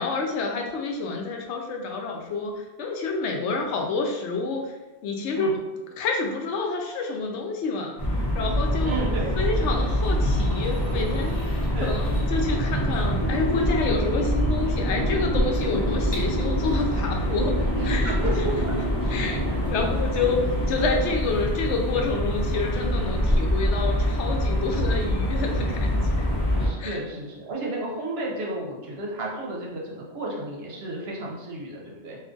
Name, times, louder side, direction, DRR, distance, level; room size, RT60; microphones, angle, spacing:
voice 1, 0.0-4.7 5.0-5.6 6.0-8.0 8.3-9.1 9.4-17.6 17.8-18.1 19.1-19.4 19.7-26.3 26.8-27.0, left 3 dB, 85° left, 2 dB, 0.9 m, -28 dB
sound 1, 8.0-26.7, equal, 25° left, 0.9 m, -25 dB
voice 2, 8.8-9.3 11.6-12.0 17.7-18.7 19.1-19.6 26.6-32.2, right 1 dB, 65° right, -2 dB, 0.9 m, -32 dB
2.5 x 2.4 x 3.7 m, 1.1 s
omnidirectional pair, 1.2 m